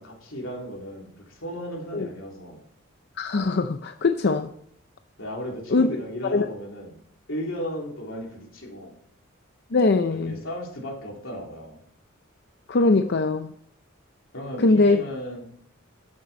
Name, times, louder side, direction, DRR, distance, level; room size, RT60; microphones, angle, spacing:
voice 1, 0.0-2.6 5.2-7.0 7.3-8.9 10.1-11.8 14.3-15.4, equal, 80° left, 3.5 m, -35 dB
voice 2, 3.2-4.5 5.7-5.9 6.3-6.5 9.7-10.4 12.7-13.5 14.6-15.0, left 3 dB, 55° left, 0.6 m, -21 dB
12.5 x 7.7 x 4.3 m
head